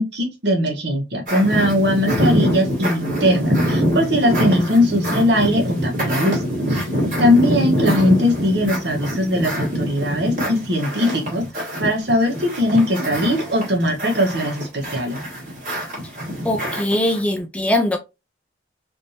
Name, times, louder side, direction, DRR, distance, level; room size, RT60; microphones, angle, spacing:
voice 1, 0.0-6.4 6.7-6.8 7.2-15.2, left 1 dB, 60° right, 1.1 m, -20 dB
sound 1, 1.3-17.2, equal, 45° right, 1.5 m, -24 dB
voice 2, 16.4-18.0, left 1 dB, 5° left, 0.3 m, -21 dB
3.4 x 2.6 x 2.7 m
head